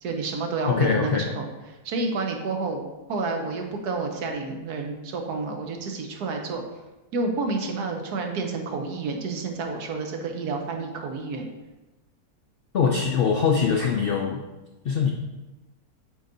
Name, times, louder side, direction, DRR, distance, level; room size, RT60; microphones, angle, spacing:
voice 1, 0.0-1.5 1.8-2.8 3.1-6.6 7.1-11.5, right 3 dB, 85° right, 3 dB, 1.5 m, -29 dB
voice 2, 0.6-1.3 12.7-14.4 14.8-15.1, left 6 dB, 75° left, 1 dB, 0.5 m, -22 dB
7.9 x 3.9 x 4.0 m, 1.1 s
omnidirectional pair, 1.6 m